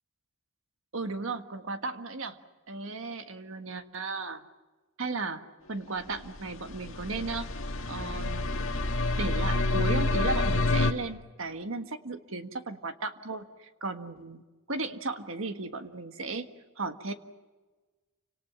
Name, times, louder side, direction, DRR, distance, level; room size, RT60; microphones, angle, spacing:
voice 1, 0.9-2.4 2.7-4.4 5.0-5.4 5.7-7.5 7.9-8.5 9.2-14.4 14.7-16.5 16.8-17.1, right 3 dB, 65° right, 8 dB, 1.6 m, -35 dB
sound 1, 6.2-10.9, left 2 dB, 65° left, 1.9 m, -28 dB
29.5 x 26.0 x 6.1 m, 1.3 s
head